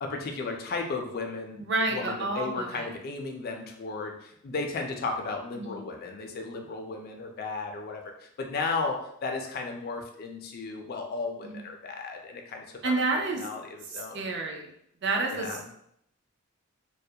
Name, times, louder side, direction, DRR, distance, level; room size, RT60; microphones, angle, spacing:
voice 1, 0.0-12.9 13.4-14.3 15.3-15.6, left 3 dB, 45° left, 3 dB, 0.3 m, -35 dB
voice 2, 1.6-2.9 5.6-5.8 11.4-11.6 12.8-13.4 13.9-14.7 15.0-15.7, right 3 dB, 50° right, 1 dB, 0.4 m, -30 dB
2.2 x 2.0 x 2.7 m, 0.72 s
head